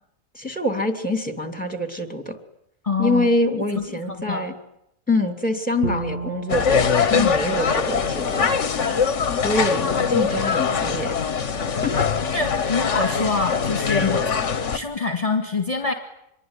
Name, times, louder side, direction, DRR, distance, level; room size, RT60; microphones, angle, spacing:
voice 1, 0.3-2.4 3.0-4.5 5.1-8.5 9.3-12.1 14.0-14.2, left 1 dB, 5° left, 6 dB, 3.0 m, -25 dB
voice 2, 2.8-3.3 3.8-4.4 7.1-7.3 12.3-14.2 14.7-15.9, left 4 dB, 25° left, 4 dB, 2.1 m, -25 dB
Bowed string instrument, 5.8-8.9, right 2 dB, 45° right, 2.2 m, -34 dB
sound 1, 6.5-14.8, left 6 dB, 60° left, 1.5 m, -22 dB
26.5 x 22.5 x 9.9 m, 0.82 s
omnidirectional pair, 1.4 m